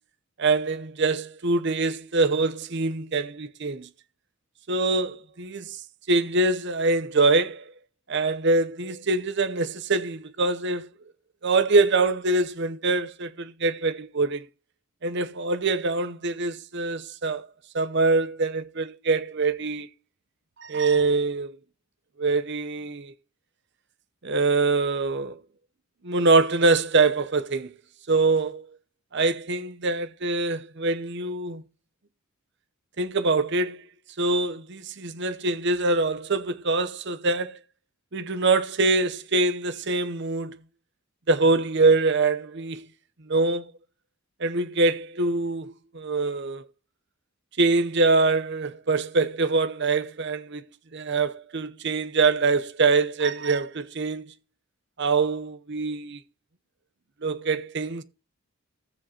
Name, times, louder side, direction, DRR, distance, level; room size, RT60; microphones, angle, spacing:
voice 1, 0.4-3.9 4.7-5.8 6.1-7.6 8.1-10.9 11.4-14.4 15.0-17.4 17.7-19.9 20.6-21.5 22.2-23.1 24.2-25.4 26.0-27.7 28.1-28.6 29.1-31.6 33.0-33.8 34.2-37.6 38.1-40.6 41.3-42.8 43.3-43.7 44.4-46.6 47.6-50.6 50.9-54.3 55.0-56.2 57.2-58.0, right 3 dB, 55° right, 0.7 m, -24 dB
15.0 x 7.5 x 2.9 m
head